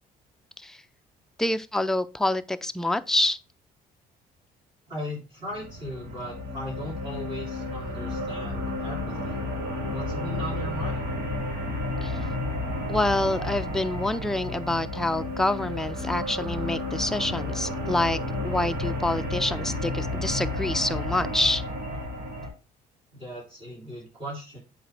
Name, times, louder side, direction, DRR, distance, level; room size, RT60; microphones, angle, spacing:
voice 1, 1.4-3.4 12.0-12.1 12.9-18.2 18.4-21.6, left 1 dB, 5° left, 0.4 m, -27 dB
voice 2, 4.9-9.4 9.9-11.1 23.2-24.6, equal, 30° right, 3.3 m, -38 dB
sound 1, 5.5-22.5, left 2 dB, 85° right, 3.0 m, -31 dB
7.7 x 4.1 x 3.3 m
cardioid pair, 110°, 17 cm